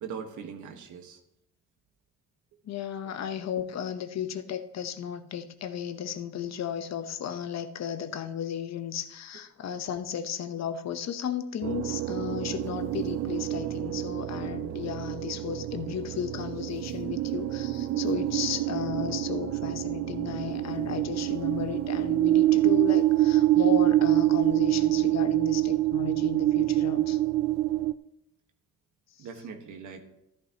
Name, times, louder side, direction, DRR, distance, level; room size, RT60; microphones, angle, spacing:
voice 1, 0.0-1.2 29.2-30.0, right 6 dB, 75° right, 5 dB, 1.5 m, -40 dB
voice 2, 2.6-27.2, left 9 dB, 60° left, 10 dB, 0.9 m, -34 dB
sound 1, 11.6-27.9, right 15 dB, 60° right, 0.5 m, -26 dB
13.5 x 11.5 x 2.9 m, 0.84 s
cardioid pair, 90°, 30 cm